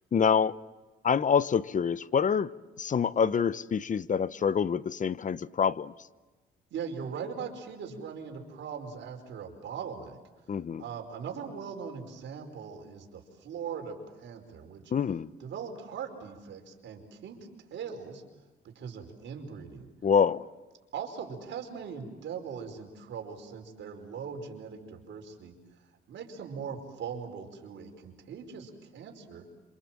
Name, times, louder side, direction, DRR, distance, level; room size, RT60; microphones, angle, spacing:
voice 1, 0.1-0.6 1.0-2.5 2.8-5.9 10.5-10.8 14.9-15.3 20.0-20.5, left 7 dB, 40° left, 0.9 m, -26 dB
voice 2, 6.7-10.2 10.8-14.8 15.4-17.4 17.7-18.2 18.6-19.9 20.9-25.5 26.1-29.4, right 6 dB, 70° right, 5.1 m, -40 dB
27.5 x 27.0 x 7.6 m
cardioid pair, 90°, 20 cm